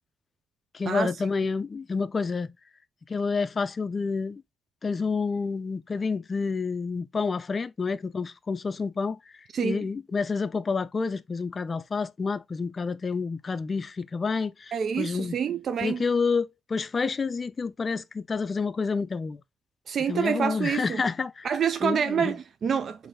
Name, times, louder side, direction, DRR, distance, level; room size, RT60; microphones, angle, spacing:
voice 1, 0.7-2.5 3.1-4.4 4.8-9.2 9.6-15.3 15.8-19.4 20.1-21.5 21.8-22.4, left 4 dB, 35° left, 0.4 m, -29 dB
voice 2, 9.5-9.9 14.7-16.0 19.9-21.0 21.4-23.1, right 7 dB, 55° right, 0.3 m, -27 dB
4.0 x 2.6 x 3.1 m
cardioid pair, 90°, 0 cm